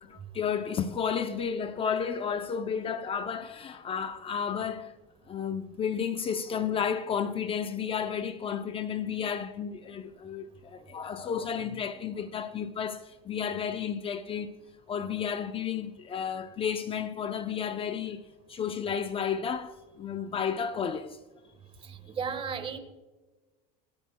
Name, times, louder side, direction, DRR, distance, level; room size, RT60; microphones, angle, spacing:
voice 1, 0.0-4.9 5.3-14.5 14.9-21.2, left 7 dB, 30° left, 0.6 m, -32 dB
voice 2, 21.8-22.8, right 6 dB, 30° right, 1.4 m, -34 dB
26.5 x 9.2 x 2.2 m
supercardioid pair, 125°, 19 cm